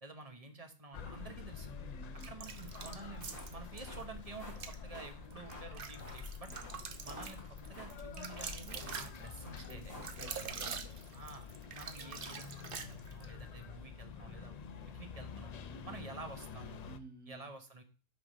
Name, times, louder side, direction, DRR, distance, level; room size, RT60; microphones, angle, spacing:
voice 1, 0.0-1.7 2.3-6.5 7.0-7.4 7.7-9.9 11.1-14.6 14.9-15.5 15.8-16.8 17.3-17.8, right 3 dB, 30° right, 5 dB, 1.1 m, -50 dB
sound 1, 0.9-17.0, left 6 dB, 70° left, 0.4 m, -48 dB
voice 2, 1.7-2.3 6.5-6.7 9.7-10.9 15.7-16.0 16.9-17.5, right 1 dB, 5° right, 1 dB, 2.2 m, -53 dB
sound 2, 2.2-3.8 4.5-4.8 5.3-13.3, right 6 dB, 50° right, 0.9 m, -45 dB
sound 3, 2.6-10.5, left 1 dB, 45° left, 3.5 m, -51 dB
8.3 x 3.7 x 6.1 m, 0.36 s
omnidirectional pair, 1.4 m